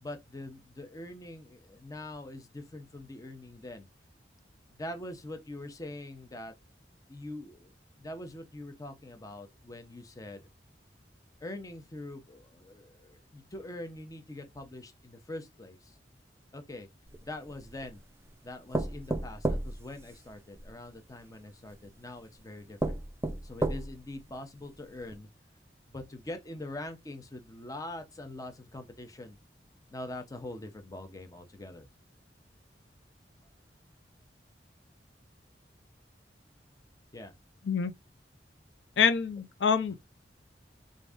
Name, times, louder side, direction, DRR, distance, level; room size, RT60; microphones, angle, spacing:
voice 1, 0.0-3.9 4.7-6.5 7.1-10.4 11.4-16.0 16.5-16.9 17.2-18.0 18.4-23.0 23.4-25.3 25.9-29.4 29.9-31.9 37.1-37.3 39.9-40.0, left 1 dB, 20° left, 0.7 m, -43 dB
sound 1, 17.1-18.0 18.7-20.7 21.7-21.8 22.3-22.4 22.8-24.1 24.6-24.7 25.1-25.2, right 1 dB, 15° right, 0.4 m, -32 dB
voice 2, 39.0-40.0, left 6 dB, 90° left, 0.5 m, -26 dB
3.8 x 2.6 x 3.5 m
head